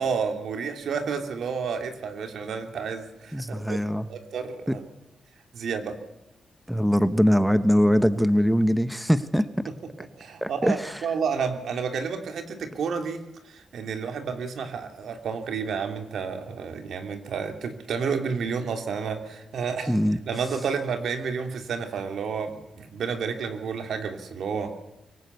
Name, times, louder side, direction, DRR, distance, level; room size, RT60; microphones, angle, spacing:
voice 1, 0.0-3.8 4.1-4.8 5.5-6.0 10.2-20.0 20.3-24.8, right 6 dB, 80° right, 6 dB, 2.8 m, -30 dB
voice 2, 3.3-4.1 4.7-4.8 6.7-9.5 10.4-11.0 19.9-20.2, equal, 5° right, 11 dB, 1.1 m, -22 dB
24.0 x 18.0 x 8.2 m, 0.94 s
cardioid pair, 105°, 0 cm